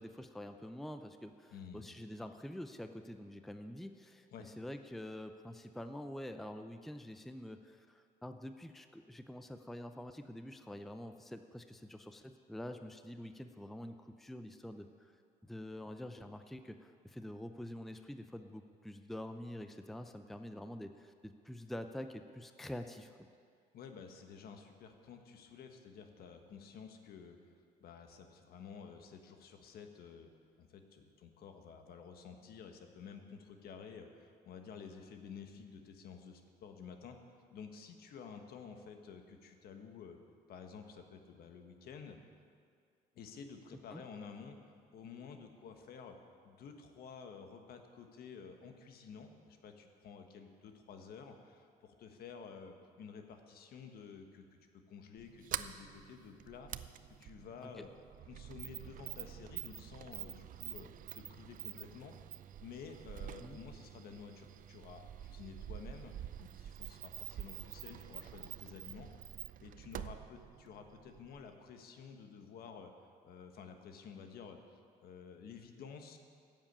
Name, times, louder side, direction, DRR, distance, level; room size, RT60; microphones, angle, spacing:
voice 1, 0.0-15.1 15.4-23.3 43.9-44.0 57.6-57.8 63.4-63.6, left 1 dB, ahead, 8 dB, 0.5 m, -47 dB
voice 2, 1.5-1.8 4.3-4.5 23.7-27.4 27.8-30.3 30.6-40.2 40.5-42.2 43.1-46.2 46.4-54.4 54.9-56.7 57.2-57.9 58.3-62.1 62.6-66.1 66.4-69.3 69.6-72.9 73.2-76.2, left 6 dB, 65° left, 5 dB, 1.4 m, -51 dB
Sliding door, 55.2-71.5, right 11 dB, 55° right, 0.5 m, -47 dB
13.0 x 7.4 x 8.8 m, 2.3 s
cardioid pair, 110°, 17 cm